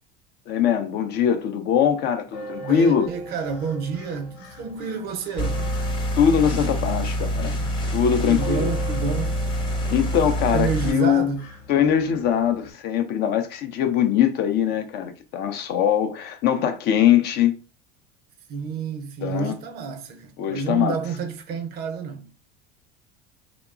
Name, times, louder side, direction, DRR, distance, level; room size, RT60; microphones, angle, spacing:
voice 1, 0.5-3.1 6.2-7.6 7.9-8.7 9.9-11.3 11.7-17.6 19.2-19.6 20.4-21.0, left 9 dB, 50° left, 0.6 m, -22 dB
sound 1, 2.3-12.7, right 1 dB, 75° left, 0.9 m, -41 dB
voice 2, 2.6-5.7 8.3-9.4 10.5-11.5 18.5-22.3, right 5 dB, 50° right, 0.5 m, -29 dB
sound 2, 5.4-10.9, equal, 20° left, 0.8 m, -26 dB
2.9 x 2.1 x 2.4 m
hypercardioid pair, 80°, 21 cm